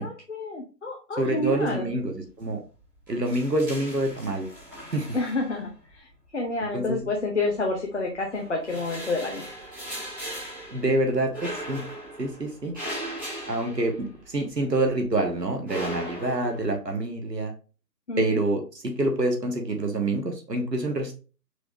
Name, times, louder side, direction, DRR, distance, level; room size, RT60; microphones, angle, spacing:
voice 1, 0.0-1.9 5.1-9.4 18.1-18.4, left 2 dB, 45° left, 0 dB, 0.7 m, -29 dB
voice 2, 1.2-2.6 3.1-4.5 4.9-5.1 6.7-7.0 10.7-11.8 12.2-12.7 13.5-17.5 18.2-21.1, right 2 dB, 75° right, 3 dB, 1.4 m, -27 dB
sound 1, 1.5-2.0 2.3-2.5 2.8-5.9 6.8-7.8 8.2-14.5 14.8-16.8, equal, 15° right, 1.1 m, -38 dB
4.7 x 3.4 x 2.6 m, 0.35 s
figure-of-eight pair, 150°, 50 cm